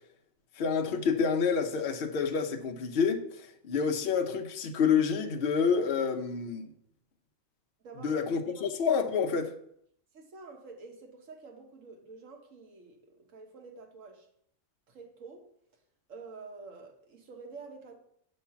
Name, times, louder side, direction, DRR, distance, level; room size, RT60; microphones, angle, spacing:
voice 1, 0.6-6.7 8.0-9.5, left 6 dB, 55° left, 0.8 m, -28 dB
voice 2, 7.8-8.2 8.6-8.7 10.1-14.3 14.9-15.5 16.1-18.0, right 4 dB, 70° right, 1.4 m, -48 dB
7.0 x 3.2 x 5.7 m
omnidirectional pair, 1.4 m